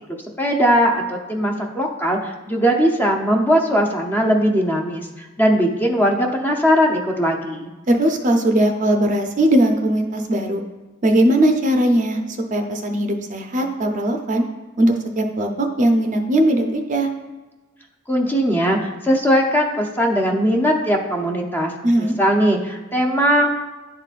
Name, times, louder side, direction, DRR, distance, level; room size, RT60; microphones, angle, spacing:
voice 1, 0.4-7.7 18.1-21.7 22.0-23.6, equal, 10° left, 0 dB, 0.6 m, -19 dB
voice 2, 7.9-10.6 11.0-12.2 12.5-14.4 14.8-17.1 21.8-22.1, right 1 dB, 40° right, 3 dB, 0.6 m, -19 dB
11.0 x 3.8 x 2.4 m, 1.2 s
head